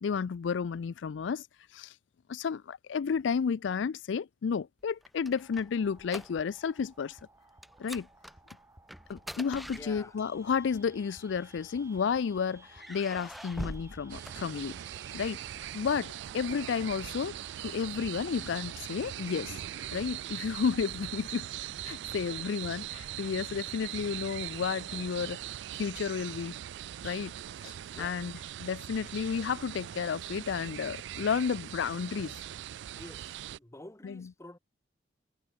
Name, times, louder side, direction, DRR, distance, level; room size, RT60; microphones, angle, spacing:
voice 1, 0.0-1.5 1.7-2.0 2.3-7.2 7.8-8.1 9.1-14.8 15.1-17.4 17.6-19.6 19.9-21.5 21.8-25.4 25.7-26.6 27.0-27.3 27.6-28.3 28.6-32.4 34.0-34.3, left 6 dB, 85° left, 0.4 m, -32 dB
sound 1, 4.8-6.7 7.0-7.2 7.6-10.4 11.3-12.1 12.7-15.0, equal, ahead, 0.4 m, -44 dB
sound 2, 5.4-20.0, right 2 dB, 15° right, 2.3 m, -57 dB
voice 2, 9.7-10.1 27.9-28.2 32.9-34.6, left 1 dB, 15° left, 1.4 m, -49 dB
sound 3, 14.1-33.6, right 12 dB, 70° right, 0.3 m, -41 dB
head